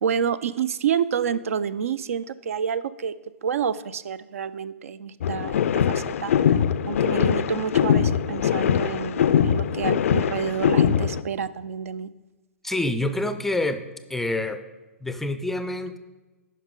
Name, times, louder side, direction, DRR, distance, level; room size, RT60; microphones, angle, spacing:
voice 1, 0.0-3.2 3.4-6.6 6.9-12.1, right 7 dB, 75° right, 16 dB, 0.4 m, -28 dB
sound 1, 5.2-11.2, left 8 dB, 70° left, 0.3 m, -22 dB
voice 2, 12.6-13.8 14.1-14.6 15.0-16.0, left 2 dB, 5° left, 10 dB, 0.4 m, -27 dB
10.0 x 5.5 x 3.7 m, 1.2 s
hypercardioid pair, 130°, 8 cm